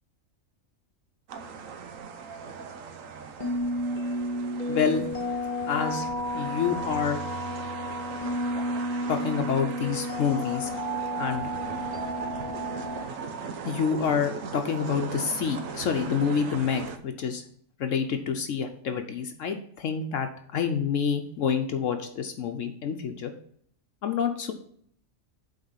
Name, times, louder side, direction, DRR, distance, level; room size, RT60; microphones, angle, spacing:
sound 1, 1.3-17.0, right 6 dB, 80° right, 1.1 m, -39 dB
sound 2, 3.4-13.0, equal, 35° left, 1.4 m, -32 dB
voice 1, 4.7-5.2 5.7-6.1 6.3-7.2 9.1-10.7 11.2-11.5 13.6-17.4 17.8-23.3 24.0-24.5, left 7 dB, 70° left, 5 dB, 1.0 m, -28 dB
8.7 x 3.9 x 5.6 m, 0.63 s
omnidirectional pair, 1.4 m